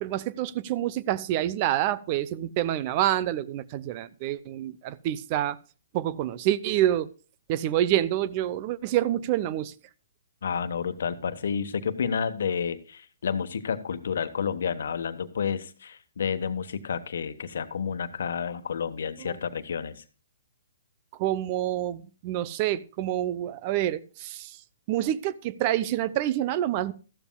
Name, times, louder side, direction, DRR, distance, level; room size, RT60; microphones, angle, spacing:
voice 1, 0.0-5.6 5.9-7.1 7.5-9.7 19.2-19.4 21.2-24.6 24.9-26.9, right 12 dB, 35° right, 0.7 m, -27 dB
voice 2, 10.4-20.0, left 6 dB, 70° left, 1.2 m, -30 dB
14.0 x 12.5 x 2.3 m
hypercardioid pair, 135°, 0 cm